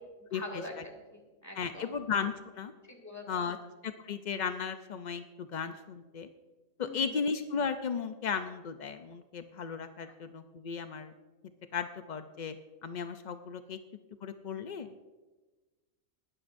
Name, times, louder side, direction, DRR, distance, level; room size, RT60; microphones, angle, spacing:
voice 1, 0.3-2.0 2.8-3.5 6.8-7.2 10.0-10.1, left 1 dB, 10° left, -1 dB, 2.1 m, -45 dB
voice 2, 1.6-2.7 3.3-3.6 3.8-6.3 6.8-11.1 11.7-12.5 12.8-13.8 14.2-15.1, left 6 dB, 75° left, 9 dB, 0.4 m, -35 dB
19.5 x 12.5 x 2.6 m, 1.2 s
omnidirectional pair, 1.5 m